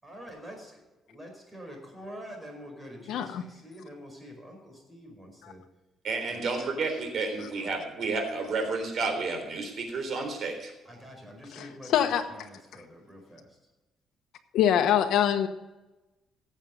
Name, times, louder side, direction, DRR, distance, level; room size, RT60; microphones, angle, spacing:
voice 1, 0.0-5.6 6.3-6.6 7.3-7.7 10.8-13.6, equal, 10° right, 2 dB, 4.9 m, -46 dB
voice 2, 3.1-3.4 5.4-5.5 11.5-12.2 14.5-15.5, left 10 dB, 75° left, 5 dB, 1.1 m, -24 dB
voice 3, 6.0-10.7, right 3 dB, 55° right, 4 dB, 3.8 m, -31 dB
17.0 x 7.5 x 5.3 m, 1.1 s
cardioid pair, 130°, 0 cm